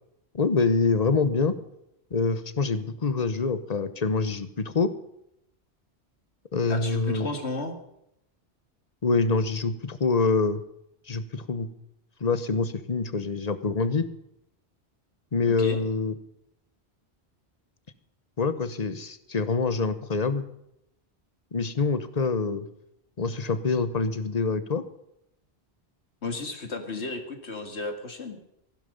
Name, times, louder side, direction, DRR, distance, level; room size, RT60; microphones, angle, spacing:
voice 1, 0.3-1.6 2.1-4.9 6.5-7.3 9.0-10.6 11.1-11.7 12.2-14.1 15.3-16.2 18.4-20.4 21.5-22.7 23.2-24.9, left 4 dB, 40° left, 13 dB, 1.1 m, -25 dB
voice 2, 6.7-7.8 15.6-15.9 26.2-28.4, left 3 dB, 85° left, 6 dB, 2.2 m, -33 dB
15.0 x 12.0 x 5.3 m, 0.79 s
omnidirectional pair, 1.1 m